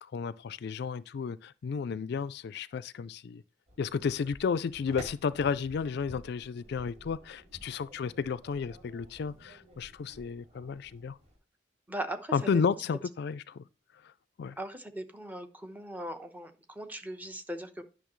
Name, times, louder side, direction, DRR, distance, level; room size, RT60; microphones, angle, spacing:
voice 1, 0.0-3.4 3.8-11.2 12.3-13.6 14.0-14.1 14.4-14.6, left 6 dB, 65° left, 0.4 m, -32 dB
sound 1, 3.7-11.4, right 1 dB, 40° right, 4.7 m, -52 dB
voice 2, 11.9-12.6 14.6-17.8, right 1 dB, 10° right, 0.9 m, -39 dB
10.0 x 6.2 x 3.1 m
head